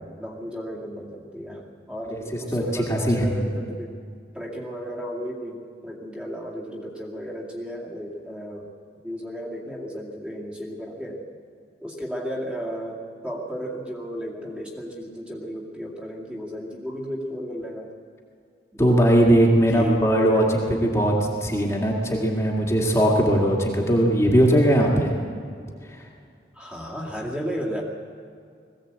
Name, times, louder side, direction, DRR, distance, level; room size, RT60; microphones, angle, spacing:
voice 1, 0.0-1.6 1.9-3.9 4.3-8.7 9.0-11.2 11.8-17.9 18.7-18.8 19.7-20.0 26.6-27.8, equal, 5° right, -3 dB, 2.2 m, -34 dB
voice 2, 2.1-3.5 18.8-21.1 21.4-25.1 25.9-26.0, equal, 15° left, -2 dB, 2.1 m, -20 dB
20.5 x 16.0 x 8.2 m, 2.2 s
head